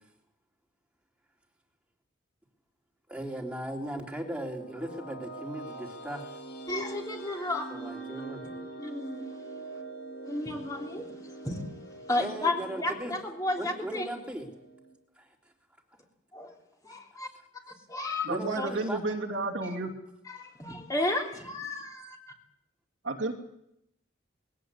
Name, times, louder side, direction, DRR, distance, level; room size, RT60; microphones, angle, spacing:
voice 1, 3.1-6.2 7.7-8.4 12.2-13.1 13.6-14.5 15.2-15.3 18.3-19.0, right 1 dB, 5° right, 1 dB, 3.2 m, -37 dB
sound 1, 4.2-14.9, right 2 dB, 50° left, 6.6 m, -44 dB
voice 2, 6.7-7.7 8.8-9.3 10.3-11.1 11.4-11.6 12.1-14.1 16.3-16.6 16.8-17.3 17.9-18.3 18.5-18.7 19.6-19.8 20.2-22.2, left 2 dB, 15° left, 1 dB, 3.3 m, -32 dB
voice 3, 18.3-19.9 23.0-23.3, right 2 dB, 60° right, 1 dB, 2.7 m, -31 dB
21.0 x 17.0 x 8.2 m, 0.82 s
head